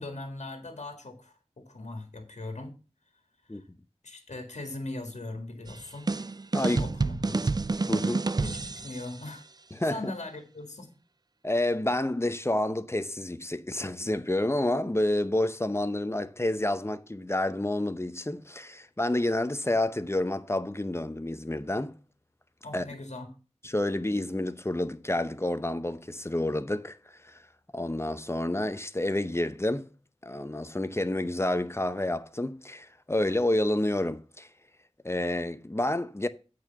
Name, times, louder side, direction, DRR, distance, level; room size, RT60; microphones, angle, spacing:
voice 1, 0.0-2.7 3.5-3.7 4.0-6.1 6.6-7.6 8.4-9.4 9.9-10.9 22.6-23.3, left 2 dB, 80° left, 1.8 m, -40 dB
sound 1, 5.7-9.2, right 3 dB, 35° right, 0.4 m, -29 dB
voice 2, 7.9-8.3 9.7-10.1 11.4-21.9 22.7-22.8 23.6-27.4 27.7-29.9 30.2-34.5 35.0-36.3, left 1 dB, 20° left, 0.7 m, -29 dB
8.4 x 4.7 x 6.8 m
wide cardioid pair, 50°, 12 cm